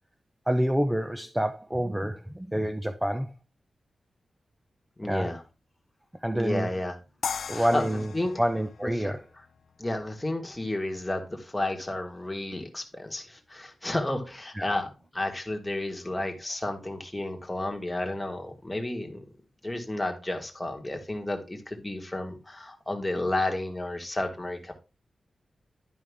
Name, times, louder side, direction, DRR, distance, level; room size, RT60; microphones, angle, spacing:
voice 1, 0.5-3.3 5.0-5.3 6.2-6.7 7.5-8.1 8.4-9.2 14.5-14.8, equal, 5° right, 0.6 m, -27 dB
voice 2, 5.0-5.4 6.3-6.9 7.5-7.9 8.1-8.3 8.8-9.1 9.8-19.2 19.6-24.7, left 1 dB, 15° left, 1.5 m, -32 dB
sound 1, 7.2-10.3, left 6 dB, 85° left, 0.5 m, -38 dB
11.0 x 5.2 x 3.5 m
wide cardioid pair, 130°, 0 cm